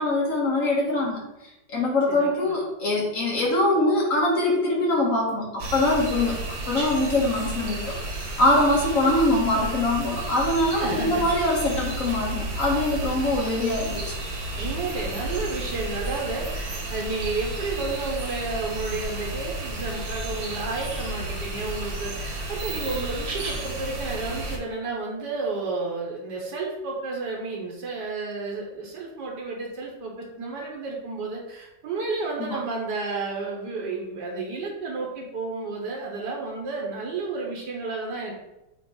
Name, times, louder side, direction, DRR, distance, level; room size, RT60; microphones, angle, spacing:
voice 1, 0.0-6.4 6.7-14.0 32.4-32.6, left 1 dB, 50° left, -3 dB, 1.9 m, -23 dB
voice 2, 2.1-2.6 10.8-11.3 14.6-38.3, right 3 dB, 80° right, -1 dB, 1.6 m, -31 dB
sound 1, 5.6-24.6, right 1 dB, 65° right, 1.5 m, -32 dB
7.8 x 3.1 x 3.9 m, 0.93 s
omnidirectional pair, 1.8 m